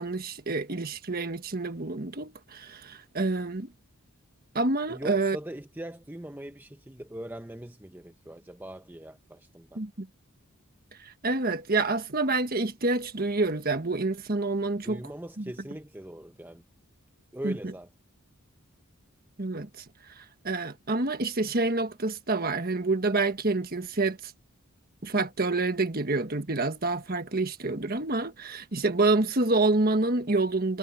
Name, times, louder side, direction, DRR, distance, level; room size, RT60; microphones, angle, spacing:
voice 1, 0.0-3.7 4.5-5.4 9.7-10.1 11.0-15.0 15.4-15.5 17.4-17.7 19.4-24.3 25.0-30.8, right 3 dB, 45° right, 1.5 m, -28 dB
voice 2, 4.9-9.8 14.8-16.6 17.3-17.9, right 1 dB, 10° right, 0.8 m, -41 dB
head